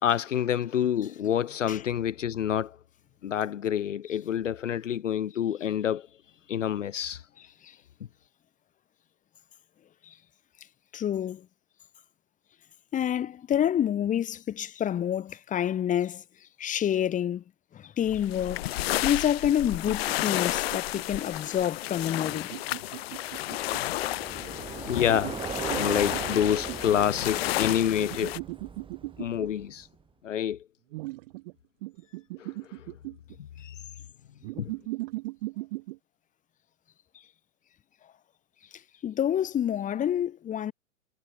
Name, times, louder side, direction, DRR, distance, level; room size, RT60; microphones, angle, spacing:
voice 1, 0.0-2.8 3.2-6.1 6.5-7.2 24.9-25.4 25.7-28.4 29.2-29.9 30.2-30.6 32.4-32.5 33.6-33.7 34.6-34.7, left 10 dB, 60° left, 1.7 m, -27 dB
voice 2, 10.9-11.4 12.9-16.2 16.6-17.4 17.7-18.6 19.0-22.6 39.0-40.7, left 10 dB, 20° left, 3.2 m, -28 dB
sound 1, 18.1-28.4, left 17 dB, 45° left, 5.2 m, -32 dB
sound 2, 19.4-21.2 22.3-24.0 25.0-27.0 28.0-29.5 30.9-31.5 31.8-33.4 34.4-36.0, right 21 dB, 40° right, 3.0 m, -38 dB
Bicycle, 23.3-29.8, right 6 dB, 10° right, 5.6 m, -39 dB
figure-of-eight pair, 115°, 41 cm